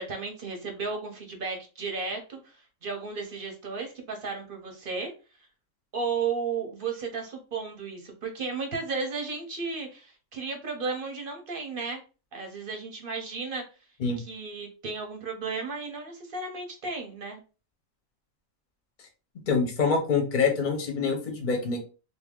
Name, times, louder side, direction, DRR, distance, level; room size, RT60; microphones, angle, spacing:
voice 1, 0.0-2.6 2.8-5.1 5.9-12.0 12.3-13.6 14.2-17.4, right 4 dB, 45° right, 3 dB, 0.8 m, -34 dB
voice 2, 19.5-21.8, left 5 dB, 40° left, 3 dB, 1.0 m, -25 dB
2.8 x 2.6 x 3.6 m, 0.33 s
omnidirectional pair, 1.5 m